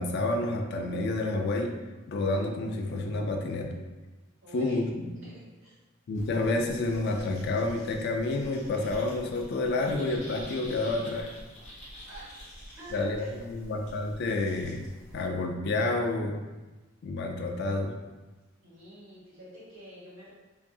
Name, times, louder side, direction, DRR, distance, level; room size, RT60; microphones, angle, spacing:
voice 1, 0.0-1.7 2.1-3.7 4.5-5.1 6.1-11.3 12.9-14.9 15.1-16.4 17.0-17.9, left 2 dB, 55° left, 3 dB, 0.3 m, -29 dB
voice 2, 4.4-4.8 5.1-5.7 12.0-12.4 12.8-13.6 18.6-20.3, right 1 dB, 75° right, -8 dB, 1.2 m, -48 dB
sound 1, 6.1-15.2, equal, 35° left, 0.8 m, -47 dB
2.6 x 2.3 x 2.3 m, 1.2 s
head